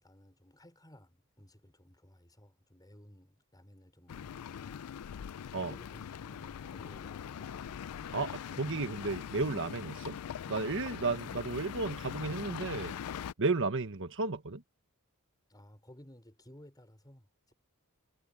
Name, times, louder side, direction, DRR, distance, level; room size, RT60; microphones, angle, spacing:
voice 1, 0.0-4.9 5.5-7.7 11.1-11.3 15.5-17.5, equal, 20° left, 5.8 m, -57 dB
sound 1, 4.1-13.3, left 8 dB, 85° left, 0.4 m, -42 dB
voice 2, 8.1-10.2 10.5-12.9 13.4-14.6, right 3 dB, 60° right, 1.3 m, -33 dB
head